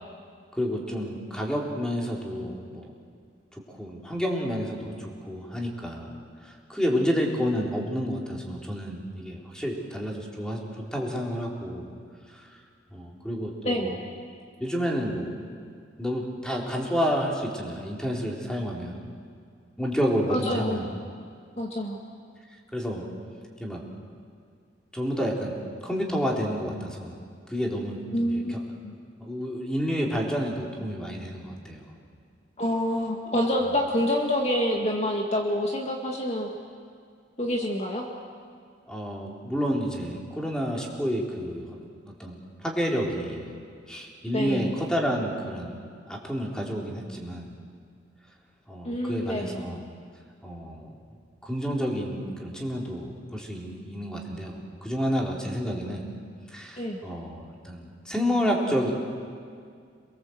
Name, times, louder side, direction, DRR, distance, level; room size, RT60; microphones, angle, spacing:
voice 1, 0.5-2.9 3.5-6.1 6.4-11.9 12.3-12.5 12.9-14.0 14.6-15.4 16.0-19.0 19.8-20.9 22.7-23.1 23.6-23.8 24.9-25.6 25.8-27.1 27.5-28.6 29.2-31.9 38.9-41.7 42.0-43.5 43.9-45.8 46.1-47.5 48.7-49.9 50.4-50.9 51.4-56.1 56.5-58.9, equal, 5° left, -2 dB, 3.7 m, -30 dB
voice 2, 20.3-20.8 21.6-22.0 28.1-28.6 28.8-28.9 32.6-36.5 37.4-38.1 44.3-44.7 48.9-49.5 56.8-57.0, left 1 dB, 35° left, 0 dB, 2.0 m, -27 dB
28.0 x 22.5 x 7.9 m, 2.2 s
head